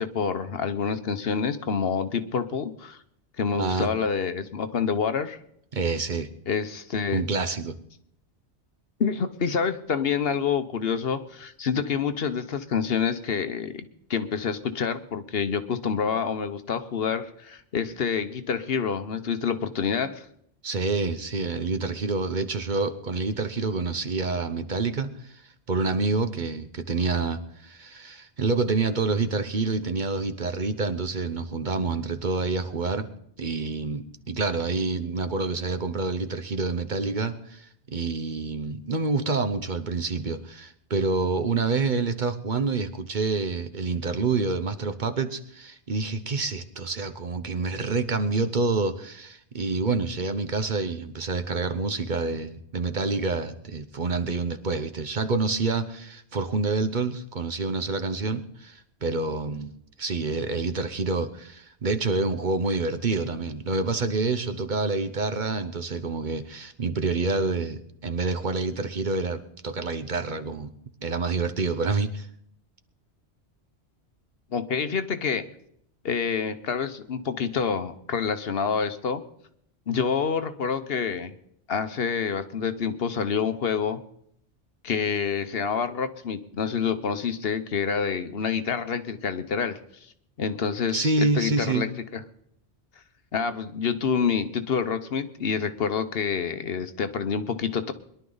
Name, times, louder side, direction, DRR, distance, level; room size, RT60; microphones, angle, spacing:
voice 1, 0.0-3.0 3.4-5.4 6.5-7.2 9.0-20.3 74.5-75.4 76.0-79.2 79.9-81.3 81.7-84.0 84.8-90.1 90.4-92.2 93.3-97.9, left 6 dB, 60° left, 10 dB, 1.1 m, -27 dB
voice 2, 3.6-3.9 5.7-6.3 7.1-7.7 20.6-25.4 25.7-33.1 33.4-59.7 60.0-70.7 71.0-72.3 90.9-91.9, right 3 dB, 45° right, 9 dB, 1.0 m, -27 dB
22.0 x 11.5 x 3.9 m, 0.71 s
omnidirectional pair, 1.1 m